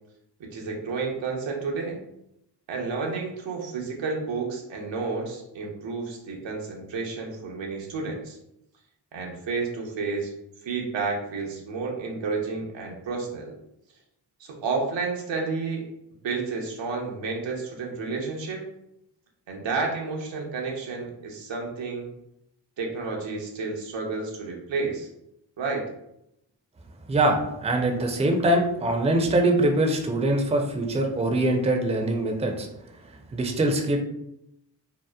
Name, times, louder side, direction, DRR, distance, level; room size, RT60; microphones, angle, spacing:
voice 1, 0.4-2.0 2.7-8.4 9.1-10.3 10.6-13.6 14.4-15.9 16.2-18.6 19.5-22.1 22.8-25.1 25.6-25.9, right 4 dB, 90° right, 0 dB, 0.6 m, -31 dB
voice 2, 27.1-32.7 33.3-34.0, right 1 dB, 15° right, 2 dB, 0.4 m, -23 dB
2.8 x 2.0 x 2.2 m, 0.81 s
cardioid pair, 50°, 43 cm